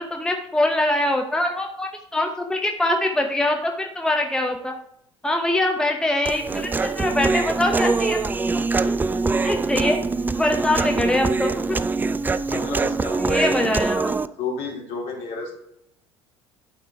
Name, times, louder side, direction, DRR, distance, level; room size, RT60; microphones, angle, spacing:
voice 1, 0.0-4.7 5.2-8.2 8.9-9.0 9.4-10.0 10.3-11.8 13.2-14.1, left 1 dB, 5° left, 3 dB, 0.8 m, -23 dB
Human voice, 6.3-14.3, right 3 dB, 15° right, 0.3 m, -23 dB
voice 2, 12.5-13.8 14.4-15.5, left 3 dB, 50° left, -1 dB, 2.7 m, -31 dB
11.5 x 5.0 x 3.6 m, 0.76 s
figure-of-eight pair, 60°, 14 cm